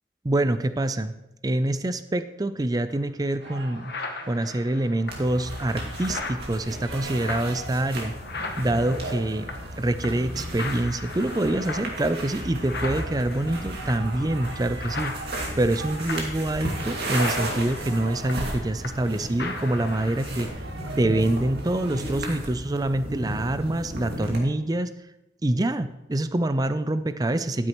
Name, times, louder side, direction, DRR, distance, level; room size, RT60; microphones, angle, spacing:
voice 1, 0.2-1.1 1.4-3.9 4.3-8.1 8.6-9.5 9.8-15.1 15.6-20.5 21.0-24.9 25.4-27.7, right 1 dB, 20° right, 12 dB, 0.5 m, -25 dB
sound 1, 2.9-3.0 3.4-9.8 10.0-10.3 10.6-19.1 19.4-20.4, left 3 dB, 60° left, 1.0 m, -38 dB
sound 2, 3.4-22.0, right 2 dB, 80° right, 1.5 m, -43 dB
sound 3, 5.1-24.4, right 1 dB, 60° right, 2.2 m, -34 dB
12.0 x 9.7 x 3.1 m, 0.94 s
head